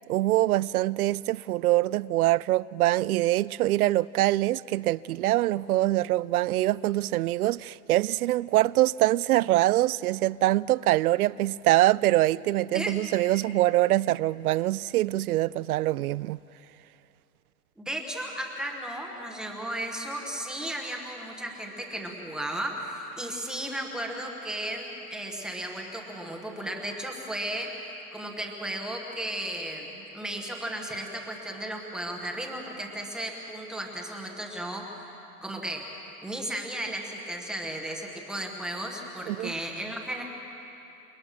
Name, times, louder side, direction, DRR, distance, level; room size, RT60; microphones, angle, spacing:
voice 1, 0.1-16.4 39.3-39.5, right 16 dB, 70° right, 0.5 m, -24 dB
voice 2, 17.8-27.7 28.1-35.1 35.4-35.8 36.2-40.2, right 1 dB, ahead, 0.9 m, -35 dB
28.5 x 20.5 x 6.3 m
supercardioid pair, 175°, 46 cm